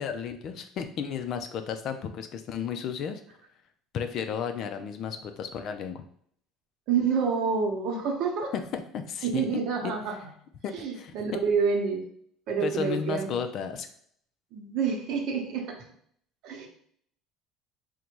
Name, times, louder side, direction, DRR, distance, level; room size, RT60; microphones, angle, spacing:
voice 1, 0.0-3.2 3.9-6.0 8.5-9.5 9.8-9.9 10.6-11.1 12.6-13.9, left 7 dB, 50° left, 7 dB, 0.5 m, -33 dB
voice 2, 6.9-8.5 9.2-10.2 10.7-12.0 12.5-13.3 14.5-15.8 16.4-16.7, right 5 dB, 60° right, 2 dB, 0.9 m, -28 dB
3.9 x 2.2 x 4.5 m, 0.63 s
cardioid pair, 135°, 0 cm